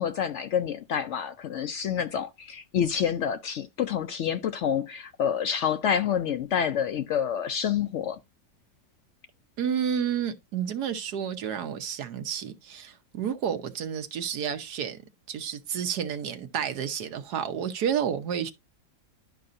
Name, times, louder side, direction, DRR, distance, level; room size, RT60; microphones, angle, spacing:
voice 1, 0.0-8.2, left 8 dB, 85° left, 0.6 m, -28 dB
voice 2, 9.6-15.0 15.3-18.5, right 8 dB, 70° right, 1.4 m, -30 dB
11.5 x 5.4 x 2.5 m
omnidirectional pair, 1.8 m